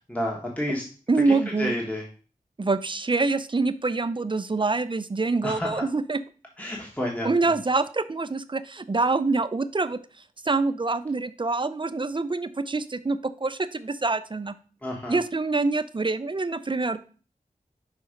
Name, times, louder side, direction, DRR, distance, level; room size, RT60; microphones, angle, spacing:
voice 1, 0.1-0.8 1.3-2.0 5.4-5.8 6.6-7.5 14.8-15.2, left 1 dB, 10° left, -1 dB, 1.3 m, -30 dB
voice 2, 1.1-1.8 2.6-6.2 7.2-10.0 10.4-14.5 15.1-17.0, right 3 dB, 35° right, 13 dB, 0.5 m, -25 dB
5.7 x 4.1 x 5.0 m, 0.39 s
wide cardioid pair, 50°, 14 cm